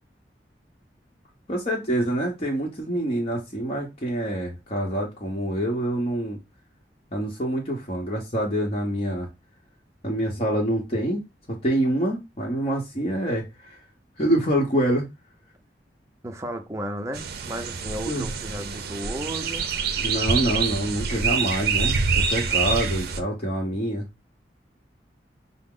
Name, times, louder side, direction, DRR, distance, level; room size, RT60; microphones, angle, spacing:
voice 1, 1.5-6.4 7.1-9.3 10.0-11.2 11.5-13.8 14.2-15.0 18.0-18.3 20.0-24.0, right 1 dB, 35° left, 0.9 m, -26 dB
voice 2, 16.2-19.8, right 1 dB, 15° right, 0.6 m, -34 dB
sound 1, 17.1-23.2, right 5 dB, 60° right, 0.6 m, -26 dB
5.8 x 2.0 x 3.7 m
head